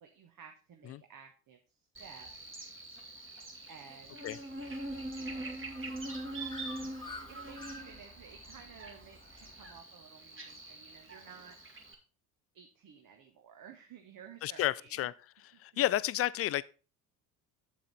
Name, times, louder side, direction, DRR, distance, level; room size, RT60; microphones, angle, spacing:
voice 1, 0.0-2.6 3.7-4.4 5.2-5.7 7.0-11.7 12.5-15.1 15.5-15.6 15.9-16.0, right 7 dB, 45° right, 1.3 m, -54 dB
Buzz, 1.9-11.9, right 1 dB, 25° right, 2.3 m, -43 dB
Bird, 4.6-9.8, left 2 dB, 10° left, 1.3 m, -51 dB
voice 2, 14.4-15.1 15.6-16.6, left 13 dB, 30° left, 0.4 m, -30 dB
7.6 x 7.4 x 4.1 m
hypercardioid pair, 60°, 48 cm